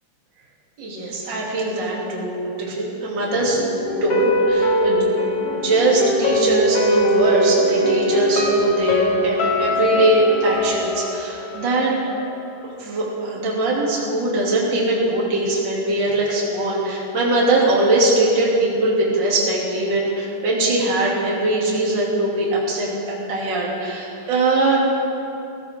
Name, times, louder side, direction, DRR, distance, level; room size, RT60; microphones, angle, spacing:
voice 1, 0.8-3.7 4.0-5.0 5.5-11.9 12.8-24.8, right 2 dB, 30° right, -5 dB, 2.6 m, -21 dB
sound 1, 3.3-12.3 12.6-12.7, equal, 60° left, 1.5 m, -22 dB
20.0 x 15.5 x 3.7 m, 2.8 s
omnidirectional pair, 5.2 m